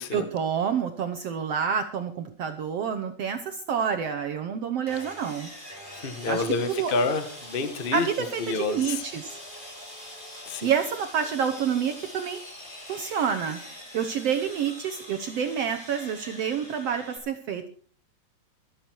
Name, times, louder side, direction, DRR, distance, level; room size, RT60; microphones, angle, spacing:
voice 1, 0.1-5.5 6.2-6.9 7.9-9.4 10.6-12.4 12.9-13.6 13.9-17.7, right 7 dB, 70° right, 7 dB, 1.5 m, -28 dB
Sawing, 4.9-17.2, equal, 15° left, 3.3 m, -43 dB
voice 2, 6.0-8.1 8.4-9.0 10.5-10.7, left 4 dB, 75° left, 9 dB, 0.5 m, -28 dB
25.5 x 8.6 x 4.6 m, 0.43 s
omnidirectional pair, 3.9 m